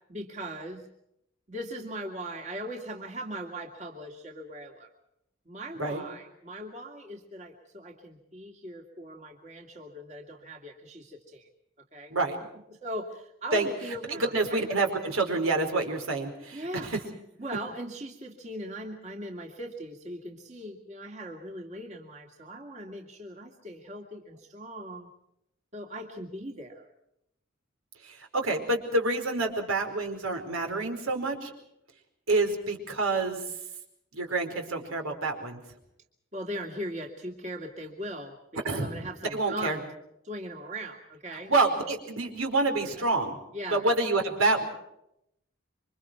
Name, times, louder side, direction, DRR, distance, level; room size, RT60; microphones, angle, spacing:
voice 1, 0.1-0.9 1.5-4.9 5.5-11.5 11.9-12.1 12.7-14.7 16.5-16.9 17.4-25.1 25.7-26.9 36.3-38.4 38.7-39.9 40.2-41.5 42.9-43.1 43.5-43.8, right 1 dB, 35° right, 2 dB, 2.6 m, -39 dB
voice 2, 14.1-17.0 28.0-31.5 32.3-33.4 34.1-35.6 38.6-38.9 39.3-39.8 41.5-43.4 43.7-44.6, right 2 dB, 80° right, 4 dB, 4.8 m, -27 dB
28.0 x 25.0 x 4.7 m, 0.79 s
head